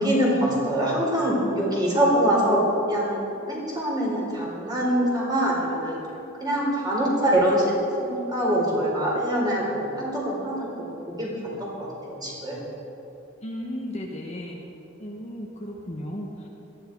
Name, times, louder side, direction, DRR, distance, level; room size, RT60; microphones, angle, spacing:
voice 1, 0.0-2.6 2.9-6.0 6.4-7.6 8.0-10.6 11.1-11.3 11.6-12.7, right 1 dB, 20° right, -4 dB, 4.1 m, -24 dB
voice 2, 13.4-14.6 15.0-16.5, equal, 35° left, -1 dB, 1.4 m, -35 dB
18.0 x 13.5 x 4.7 m, 3.0 s
head